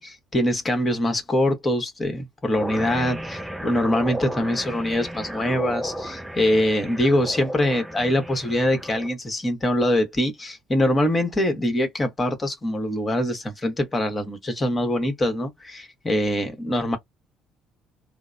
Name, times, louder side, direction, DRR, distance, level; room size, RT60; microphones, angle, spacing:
voice 1, 0.0-17.0, left 1 dB, 25° left, 1.3 m, -23 dB
sound 1, 2.6-9.1, right 1 dB, 5° right, 0.5 m, -34 dB
3.6 x 2.0 x 2.3 m
figure-of-eight pair, 50°, 0 cm